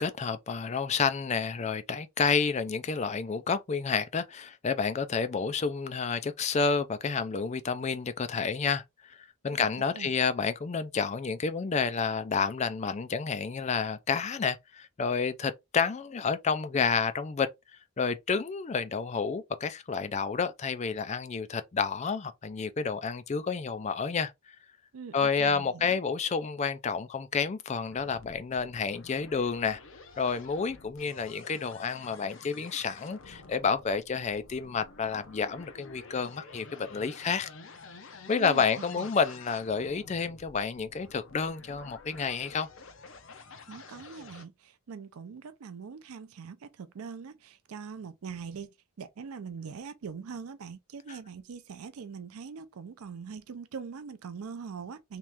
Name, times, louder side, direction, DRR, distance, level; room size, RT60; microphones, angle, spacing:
voice 1, 0.0-17.5 18.0-24.6 25.1-29.8 30.2-37.5 38.3-42.7 51.1-51.2, left 5 dB, 30° left, 0.4 m, -30 dB
voice 2, 24.9-26.0 38.4-38.6 39.0-39.1 43.7-55.2, right 6 dB, 90° right, 0.4 m, -42 dB
sound 1, 27.9-44.5, left 3 dB, 60° left, 0.7 m, -50 dB
3.1 x 3.0 x 3.4 m
head